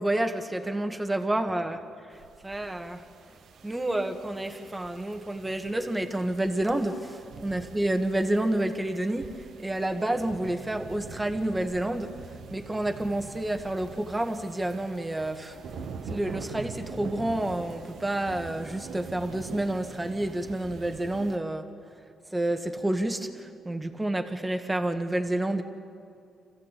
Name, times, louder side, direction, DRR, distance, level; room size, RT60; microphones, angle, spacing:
voice 1, 0.0-3.0 3.6-12.1 12.5-15.6 16.1-21.7 22.3-25.6, right 1 dB, 15° right, 6 dB, 1.9 m, -29 dB
sound 1, 2.1-21.4, right 5 dB, 70° right, 1.5 m, -44 dB
27.0 x 15.5 x 8.5 m, 2.4 s
cardioid pair, 90°, 0 cm